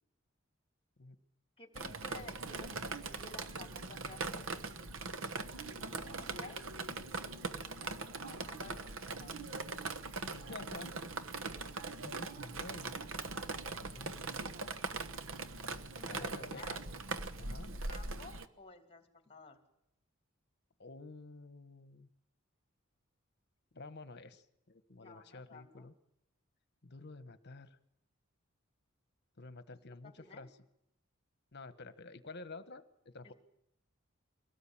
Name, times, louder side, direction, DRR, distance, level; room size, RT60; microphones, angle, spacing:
voice 1, 1.6-4.5 5.9-6.7 7.4-9.7 16.0-16.8 17.9-19.6 25.0-25.9 30.0-30.5 33.2-33.3, left 3 dB, 25° left, 5 dB, 2.8 m, -54 dB
Drip, 1.8-18.5, right 3 dB, 70° right, 1.2 m, -41 dB
voice 2, 10.3-10.9 12.0-12.9 13.6-14.6 16.0-16.8 17.4-17.7 20.8-22.1 23.7-25.9 26.8-27.8 29.4-30.5 31.5-33.3, left 3 dB, 55° left, 12 dB, 1.3 m, -50 dB
23.5 x 18.0 x 8.8 m, 0.79 s
head